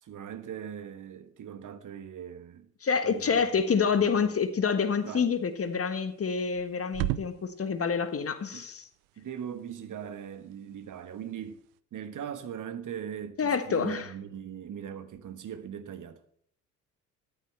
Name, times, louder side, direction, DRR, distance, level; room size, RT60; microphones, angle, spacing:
voice 1, 0.0-2.7 3.0-3.6 3.9-4.3 5.0-5.3 8.5-8.7 9.2-11.6 11.9-16.2, right 8 dB, 40° right, 1.4 m, -40 dB
voice 2, 2.8-8.8 13.4-14.1, left 6 dB, 30° left, 1.5 m, -27 dB
sound 1, 2.9-11.8, right 16 dB, 65° right, 0.7 m, -42 dB
14.0 x 11.5 x 3.3 m
figure-of-eight pair, 55°, 46 cm